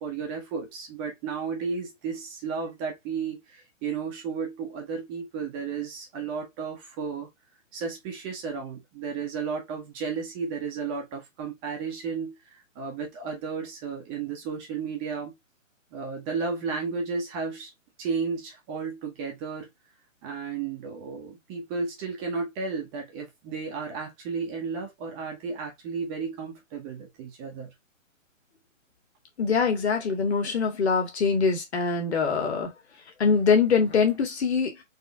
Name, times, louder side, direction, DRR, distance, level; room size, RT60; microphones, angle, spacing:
voice 1, 0.0-7.3 7.7-15.4 15.9-17.7 18.0-19.7 20.2-27.7, right 5 dB, 20° right, 1.0 m, -33 dB
voice 2, 29.4-32.7 33.2-34.8, left 5 dB, 55° left, 2.0 m, -23 dB
4.1 x 3.6 x 3.6 m
figure-of-eight pair, 135°, 39 cm